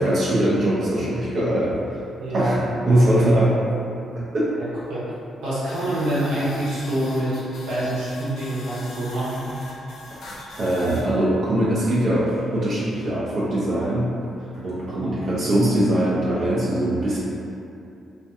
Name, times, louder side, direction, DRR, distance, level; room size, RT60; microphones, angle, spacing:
voice 1, 0.0-1.7 2.3-2.6 2.9-3.6 4.2-4.5 10.6-14.1 14.6-17.2, right 1 dB, 60° right, -8 dB, 0.5 m, -21 dB
voice 2, 2.2-2.5 4.9-5.1 5.4-7.3 7.7-9.5 14.5-14.6 14.9-15.2, right 1 dB, 85° right, -10 dB, 0.8 m, -26 dB
sound 1, 5.7-11.0, left 2 dB, 75° left, 0.5 m, -40 dB
2.5 x 2.3 x 2.6 m, 2.6 s
supercardioid pair, 55°, 0 cm